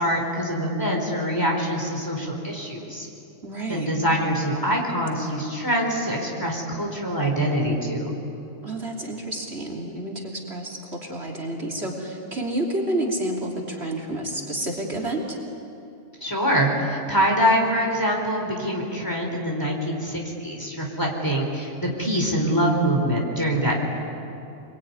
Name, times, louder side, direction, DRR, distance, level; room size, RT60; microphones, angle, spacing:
voice 1, 0.0-3.1 3.7-8.1 16.2-23.8, equal, 15° left, 0 dB, 4.4 m, -24 dB
voice 2, 3.4-3.9 8.6-15.4, right 1 dB, 50° right, 1 dB, 3.4 m, -29 dB
27.5 x 22.5 x 9.7 m, 2.7 s
omnidirectional pair, 1.4 m